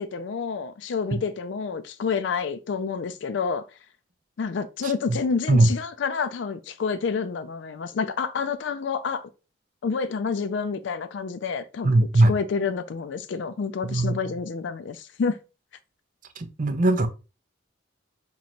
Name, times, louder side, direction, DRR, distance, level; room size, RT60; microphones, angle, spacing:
voice 1, 0.0-3.6 4.4-9.3 9.8-15.4, left 5 dB, 70° left, 0.4 m, -29 dB
voice 2, 11.8-12.3 13.9-14.1 16.4-17.1, right 2 dB, 45° right, 0.5 m, -19 dB
3.1 x 2.8 x 4.2 m
head